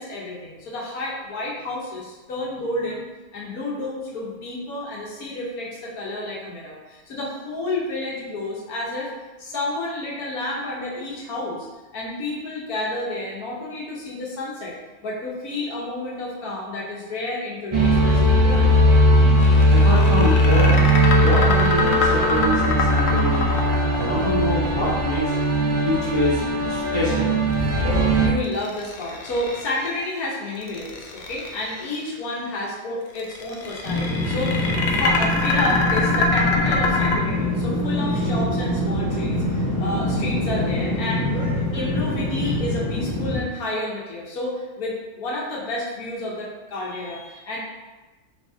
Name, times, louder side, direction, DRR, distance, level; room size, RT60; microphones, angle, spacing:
voice 1, 0.0-3.1 3.3-9.1 9.4-11.7 11.9-14.8 15.0-18.7 27.8-41.3 41.7-47.6, left 2 dB, 80° left, -4 dB, 1.4 m, -30 dB
sound 1, 17.7-28.3, equal, 40° right, 0.4 m, -18 dB
sound 2, 19.4-25.6 28.4-30.0 30.5-31.9 33.1-37.2, left 3 dB, 60° left, 0.7 m, -25 dB
voice 2, 19.7-23.5 23.9-25.3 25.8-26.4 26.7-27.3, equal, 20° right, -11 dB, 1.4 m, -25 dB
sound 3, 33.8-43.4, left 1 dB, 15° left, 1.0 m, -24 dB
4.7 x 3.3 x 2.7 m, 1.2 s
omnidirectional pair, 1.5 m